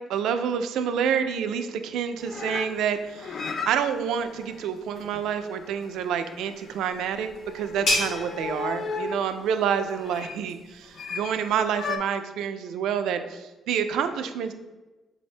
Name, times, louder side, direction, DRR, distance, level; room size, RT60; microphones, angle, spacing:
voice 1, 0.0-14.5, right 7 dB, 85° right, 9 dB, 0.3 m, -28 dB
sound 1, 2.2-9.3 10.0-10.4 10.9-11.4 11.7-12.0, left 4 dB, 50° left, 0.3 m, -36 dB
sound 2, 6.5-11.9, left 1 dB, 80° left, 1.2 m, -34 dB
4.1 x 2.6 x 3.2 m, 1.1 s
cardioid pair, 90°, 0 cm